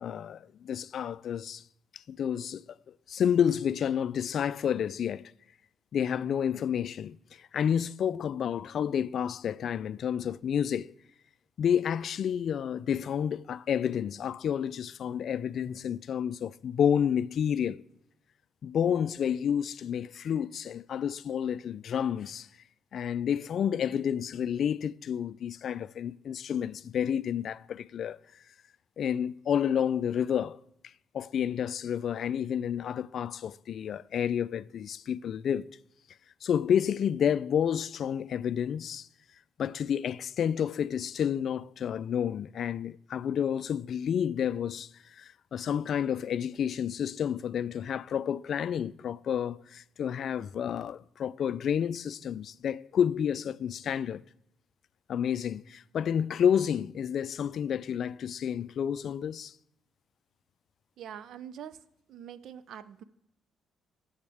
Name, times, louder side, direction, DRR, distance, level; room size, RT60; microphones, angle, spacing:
voice 1, 0.0-1.6 1.9-5.3 5.9-10.9 11.6-17.8 18.6-22.5 22.9-28.2 29.0-35.7 36.4-39.1 39.6-54.2 55.1-59.5, left 8 dB, 60° left, 0.3 m, -30 dB
voice 2, 61.0-61.8 62.1-63.0, right 9 dB, 70° right, 0.5 m, -44 dB
19.0 x 7.2 x 3.4 m
cardioid pair, 90°, 0 cm